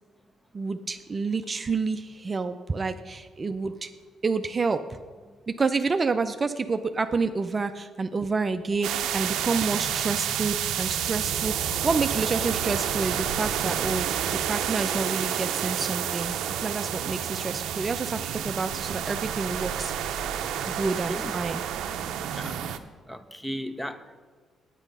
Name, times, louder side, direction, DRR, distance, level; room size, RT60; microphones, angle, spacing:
voice 1, 0.5-3.9 4.2-5.0 5.5-14.1 14.3-19.9 20.7-21.6, right 4 dB, 30° right, 9 dB, 0.5 m, -29 dB
sound 1, 8.8-22.8, right 9 dB, 85° right, 0.6 m, -29 dB
voice 2, 22.3-22.8 23.1-24.2, equal, 5° left, 10 dB, 0.7 m, -37 dB
9.1 x 8.7 x 5.4 m, 1.5 s
cardioid pair, 90°, 0 cm